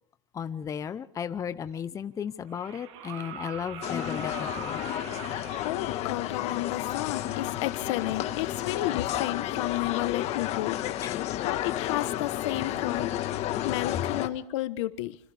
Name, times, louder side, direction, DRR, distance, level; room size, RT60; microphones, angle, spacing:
voice 1, 0.3-4.8 11.0-11.3, left 8 dB, 20° left, 12 dB, 0.8 m, -35 dB
sound 1, 1.4-1.5 2.5-5.7 7.5-7.6, right 9 dB, 70° right, 2.7 m, -41 dB
sound 2, 3.8-14.3, left 13 dB, 45° left, 1.6 m, -31 dB
voice 2, 5.6-11.0 11.4-13.1 13.6-15.2, left 16 dB, 75° left, 13 dB, 1.2 m, -32 dB
28.5 x 25.5 x 3.5 m, 0.62 s
supercardioid pair, 135°, 16 cm